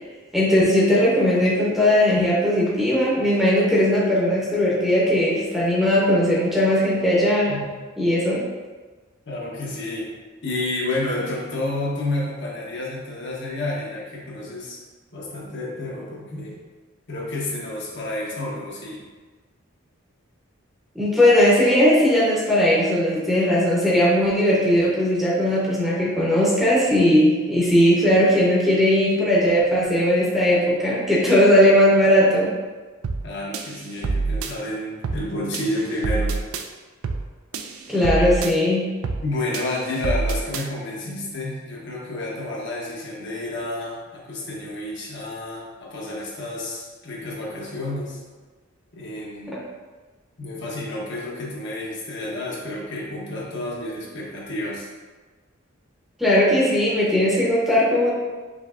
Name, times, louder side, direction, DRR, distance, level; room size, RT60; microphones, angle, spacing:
voice 1, 0.3-7.6 8.0-8.4 20.9-32.5 37.9-38.9 49.5-49.6 56.2-58.2, left 1 dB, ahead, -7 dB, 0.8 m, -18 dB
voice 2, 9.3-10.1 10.4-14.8 15.1-16.5 17.1-19.0 33.2-36.4 39.2-48.2 48.9-49.6 50.4-54.9, left 1 dB, 55° left, -4 dB, 1.0 m, -30 dB
sound 1, 33.0-33.3 33.5-34.5 35.0-35.3 35.5-36.7 37.0-37.3 37.5-38.5 39.0-39.3 39.5-40.7, right 4 dB, 80° right, 0.4 m, -26 dB
5.2 x 3.4 x 2.5 m, 1.4 s
head